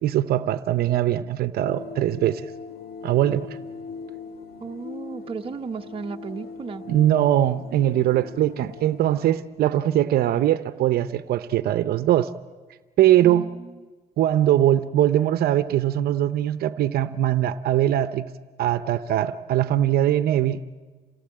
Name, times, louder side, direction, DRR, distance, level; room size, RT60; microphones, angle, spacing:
voice 1, 0.0-2.5 3.0-3.6 6.9-12.3 13.0-13.5 14.2-18.3 18.6-20.8, right 12 dB, 65° right, 0.8 m, -21 dB
sound 1, 1.6-9.4, left 5 dB, 65° left, 2.1 m, -40 dB
voice 2, 4.6-6.8 13.2-13.9, right 5 dB, 30° right, 1.0 m, -35 dB
27.5 x 18.5 x 8.9 m
cardioid pair, 110°, 17 cm